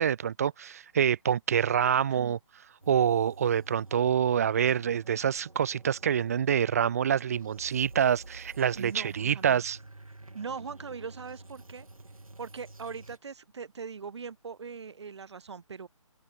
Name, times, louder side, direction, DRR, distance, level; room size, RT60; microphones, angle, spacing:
voice 1, 0.0-2.4 2.9-9.8, right 8 dB, 30° right, 0.5 m, -26 dB
sound 1, 2.8-13.2, right 2 dB, 85° right, 7.0 m, -50 dB
voice 2, 8.8-9.7 10.3-11.9 12.4-15.9, right 5 dB, 55° right, 2.2 m, -40 dB
figure-of-eight pair, 150°, 17 cm